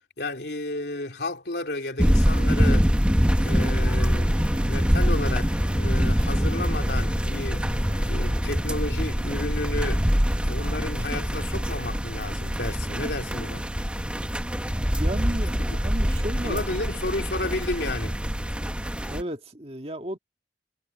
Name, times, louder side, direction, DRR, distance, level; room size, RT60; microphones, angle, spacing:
voice 1, 0.2-2.9 3.4-5.5 5.8-7.7 8.1-10.1 10.4-13.7 15.5-15.6 16.4-18.2, left 2 dB, 70° left, 3.1 m, -32 dB
sound 1, 2.0-19.2, equal, 5° right, 1.1 m, -24 dB
sound 2, 3.2-8.4, left 1 dB, 30° left, 2.2 m, -41 dB
voice 2, 14.9-16.7 19.1-20.2, right 1 dB, 35° right, 2.0 m, -34 dB
head